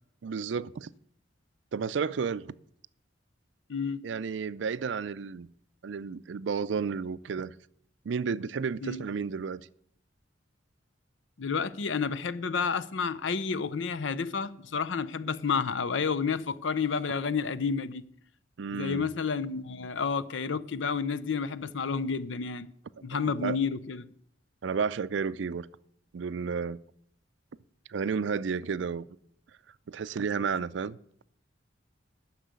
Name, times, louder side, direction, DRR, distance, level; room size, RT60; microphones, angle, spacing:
voice 1, 0.2-0.9 1.7-2.5 4.0-5.5 5.8-7.5 8.0-9.7 18.6-19.1 23.1-23.6 24.6-25.7 26.1-26.8 27.9-29.1 29.9-31.0, right 5 dB, 65° right, 0.4 m, -32 dB
voice 2, 3.7-4.0 8.8-9.0 11.4-18.0 18.7-22.7 23.0-24.1, left 5 dB, 75° left, 0.6 m, -30 dB
10.0 x 6.5 x 8.1 m
head